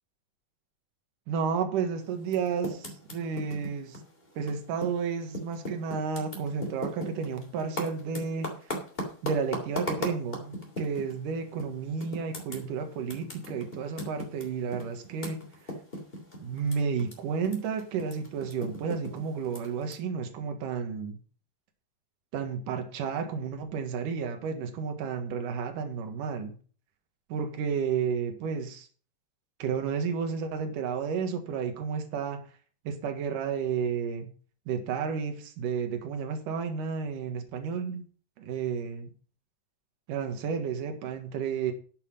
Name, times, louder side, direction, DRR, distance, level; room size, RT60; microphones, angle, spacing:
voice 1, 1.3-4.0 4.4-8.5 9.2-15.4 16.4-21.2 22.3-26.6 27.3-28.9 29.6-32.4 32.8-34.3 34.7-38.0 38.4-39.1 40.1-41.7, right 6 dB, 70° right, 5 dB, 3.1 m, -32 dB
Typing, 2.2-5.0 5.3-11.2 11.6-11.7 12.0-17.1 17.4-19.9, equal, 15° left, 2.8 m, -37 dB
11.0 x 8.3 x 5.3 m, 0.41 s
omnidirectional pair, 4.0 m